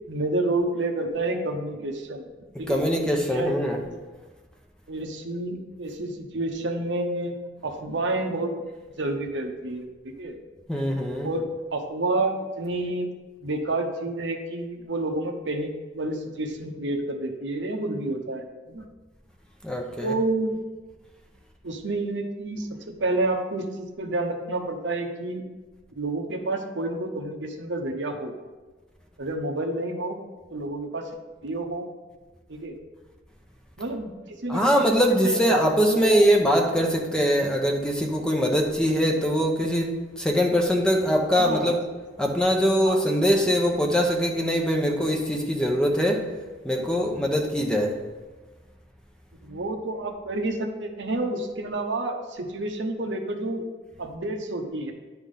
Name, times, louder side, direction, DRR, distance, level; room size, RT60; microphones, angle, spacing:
voice 1, 0.1-2.3 2.6-2.8 3.1-4.0 4.9-7.4 7.6-8.5 9.0-10.4 11.2-11.5 11.7-13.1 13.4-18.8 20.0-20.6 21.6-25.4 25.9-28.3 29.2-30.2 30.5-31.1 31.4-31.9 32.5-32.8 33.8-35.6 35.9-36.1 41.3-41.8 42.8-43.0 49.4-53.6 54.0-54.9, right 2 dB, 80° right, 3 dB, 1.0 m, -29 dB
voice 2, 2.7-3.8 10.7-11.3 19.6-20.1 34.5-41.8 42.2-46.3 46.6-48.0, equal, 5° left, 1 dB, 0.8 m, -22 dB
10.5 x 3.5 x 5.5 m, 1.3 s
head